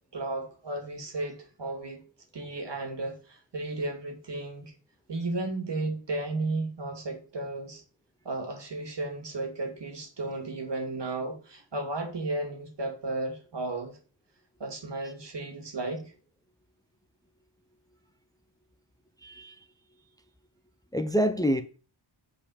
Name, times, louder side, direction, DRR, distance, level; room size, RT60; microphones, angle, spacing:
voice 1, 0.1-2.0 2.3-4.7 5.1-7.8 8.2-14.0 14.6-16.1, right 2 dB, 60° right, 2.3 m, -34 dB
voice 2, 19.2-19.5 20.9-21.6, equal, 10° left, 0.8 m, -26 dB
7.6 x 4.7 x 7.1 m
wide cardioid pair, 85°, 48 cm